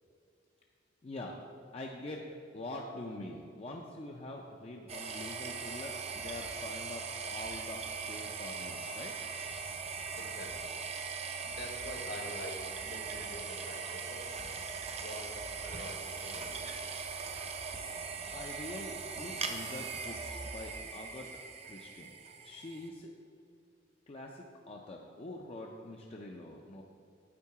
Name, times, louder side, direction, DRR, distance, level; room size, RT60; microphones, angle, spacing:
voice 1, 1.0-1.3 1.7-2.2 2.5-9.1 18.3-21.3 21.6-22.1 22.4-23.1 24.1-26.8, left 1 dB, 35° left, 0 dB, 0.5 m, -44 dB
sound 1, 4.9-22.9, right 5 dB, 35° right, 0.5 m, -40 dB
voice 2, 10.1-10.7 11.4-14.4 14.9-15.3 15.6-16.6, left 1 dB, 60° left, 2 dB, 1.2 m, -46 dB
8.5 x 4.6 x 4.7 m, 2.5 s
head